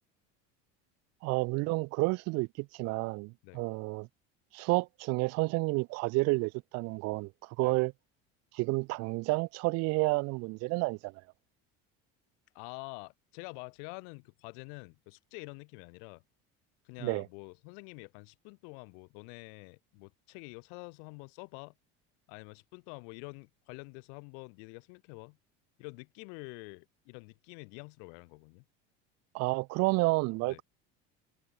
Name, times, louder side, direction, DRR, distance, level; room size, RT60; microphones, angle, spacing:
voice 1, 1.2-4.1 4.5-7.9 8.5-11.1 17.0-17.3 29.3-30.6, right 25 dB, 60° right, 0.5 m, -30 dB
voice 2, 12.5-16.2 16.8-21.7 22.3-25.4 25.8-28.6 30.4-30.6, left 40 dB or more, 80° left, 1.8 m, -47 dB
cardioid pair, 135°, 30 cm